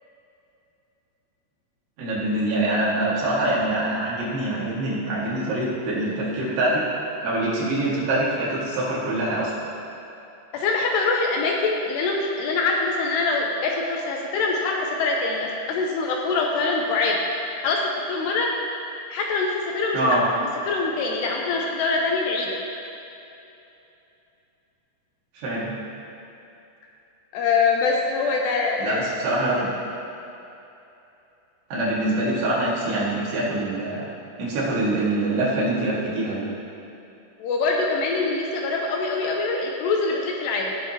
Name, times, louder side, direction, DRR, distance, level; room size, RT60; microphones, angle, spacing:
voice 1, 2.0-6.9 7.2-9.5 19.9-20.2 25.4-25.8 28.8-29.7 31.7-34.1 34.4-36.4, right 1 dB, 70° right, -7 dB, 3.9 m, -24 dB
voice 2, 10.5-17.2 17.6-17.8 18.1-18.5 19.1-20.2 20.7-22.6 27.3-29.1 37.4-40.7, left 3 dB, 80° left, 0 dB, 2.7 m, -24 dB
19.0 x 6.6 x 2.9 m, 2.8 s
omnidirectional pair, 5.2 m